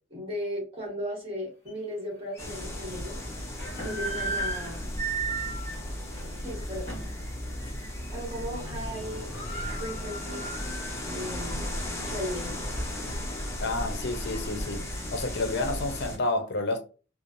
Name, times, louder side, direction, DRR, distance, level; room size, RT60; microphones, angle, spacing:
voice 1, 0.1-3.2 3.8-4.9 6.4-6.9 8.1-9.3 9.8-10.4 11.1-11.8 12.1-12.6, equal, 25° right, 1.3 m, -36 dB
sound 1, 1.7-1.8 2.3-2.5 3.4-7.2 7.6-7.8 8.1-8.6 8.8-8.9 9.1-11.1 11.5-11.6 12.2-13.5, right 3 dB, 30° left, 1.1 m, -36 dB
sound 2, 2.4-16.2, left 1 dB, 15° left, 0.7 m, -35 dB
voice 2, 13.6-14.9 15.1-16.8, left 2 dB, 55° left, 0.6 m, -29 dB
3.0 x 2.0 x 2.6 m
head